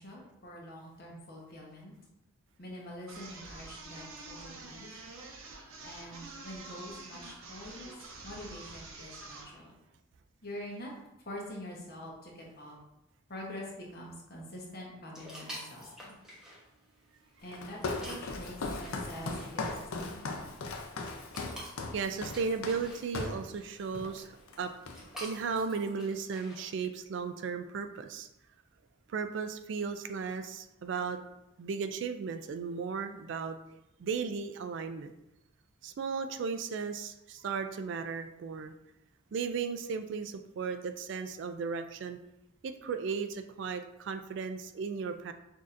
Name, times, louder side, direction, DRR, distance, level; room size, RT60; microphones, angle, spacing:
voice 1, 0.0-1.9 2.6-4.9 5.8-7.9 8.2-9.7 10.4-10.9 11.2-12.8 13.3-16.2 17.4-19.7 20.0-20.4, equal, 50° left, -2 dB, 1.0 m, -45 dB
sound 1, 3.1-9.6, right 3 dB, 85° right, 0.7 m, -47 dB
sound 2, 15.1-26.8, equal, 5° right, 0.8 m, -50 dB
Walk footsteps, 17.5-23.5 23.9-24.2 24.5-25.3, left 3 dB, 85° left, 0.5 m, -38 dB
voice 2, 21.9-28.3 29.1-31.2 31.6-33.6 34.0-35.1 35.8-38.7 39.3-42.2 42.6-45.3, right 5 dB, 60° right, 8 dB, 0.3 m, -35 dB
6.2 x 2.7 x 2.5 m, 0.87 s
head